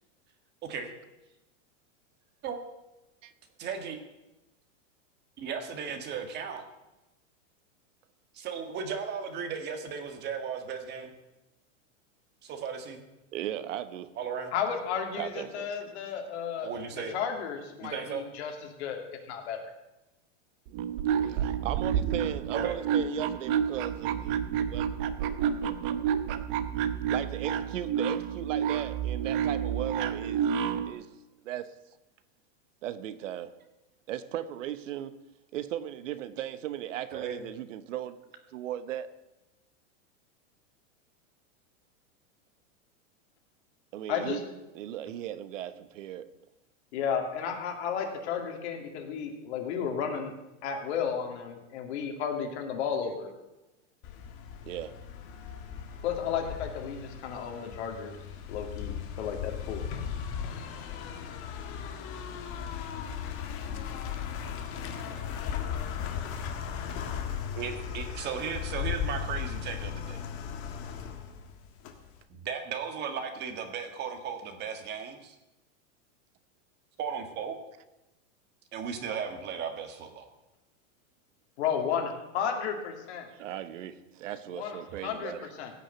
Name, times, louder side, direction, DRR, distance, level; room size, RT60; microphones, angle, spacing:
voice 1, 0.6-0.9 2.4-2.6 3.6-4.0 5.4-6.6 8.3-11.1 12.4-13.1 14.1-14.5 16.6-17.1 17.8-18.2 22.6-22.7 37.1-37.4 66.7-66.9 67.6-70.2 72.3-75.3 77.0-77.6 78.7-80.3, right 6 dB, 25° right, 6 dB, 1.6 m, -36 dB
voice 2, 13.3-14.1 15.2-15.8 21.2-25.0 27.1-31.1 31.4-31.7 32.8-33.5 34.1-35.1 35.5-38.2 38.5-39.1 43.9-44.4 44.7-46.3 54.7-54.9 83.3-85.5, right 11 dB, 75° right, 13 dB, 1.1 m, -37 dB
voice 3, 14.5-19.6 44.1-44.4 46.9-50.3 50.6-53.3 56.0-58.2 58.5-59.8 81.6-83.3 84.5-84.8 85.0-85.3 85.6-85.7, left 7 dB, 60° left, 3 dB, 2.7 m, -33 dB
sound 1, 20.7-30.9, right 8 dB, 45° right, 0.9 m, -29 dB
sound 2, 54.0-72.2, left 8 dB, 35° left, 1.6 m, -37 dB
16.5 x 6.2 x 8.1 m, 1.0 s
supercardioid pair, 155°, 38 cm